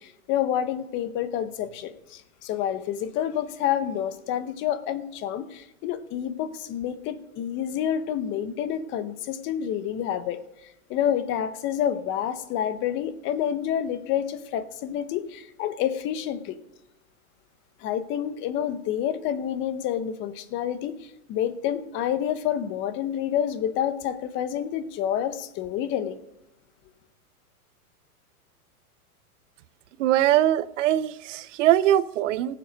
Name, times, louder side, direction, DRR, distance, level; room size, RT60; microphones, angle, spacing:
voice 1, 0.0-10.4 10.9-16.6 17.8-26.2, left 10 dB, 25° left, 0.8 m, -28 dB
voice 2, 30.0-32.6, right 12 dB, 55° right, 0.7 m, -22 dB
17.5 x 7.6 x 5.2 m
hypercardioid pair, 140°, 45 cm